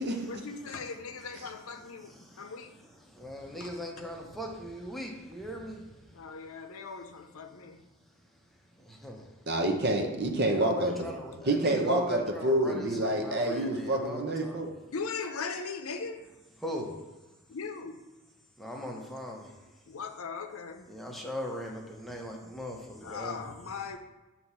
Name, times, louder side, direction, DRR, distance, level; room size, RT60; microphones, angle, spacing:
voice 1, 0.3-2.7 3.6-3.7 6.1-7.8 10.0-10.1 11.3-11.4 14.9-16.2 17.5-18.0 19.6-20.9 23.0-24.0, left 5 dB, 80° left, 6 dB, 0.6 m, -39 dB
voice 2, 1.8-2.7 3.0-6.4 8.8-9.3 10.4-14.7 16.6-16.9 18.6-19.5 20.9-23.4, left 1 dB, ahead, -1 dB, 0.8 m, -39 dB
voice 3, 9.5-10.9 11.5-14.7, right 1 dB, 50° right, 3 dB, 0.9 m, -28 dB
6.4 x 3.0 x 5.5 m, 1.1 s
head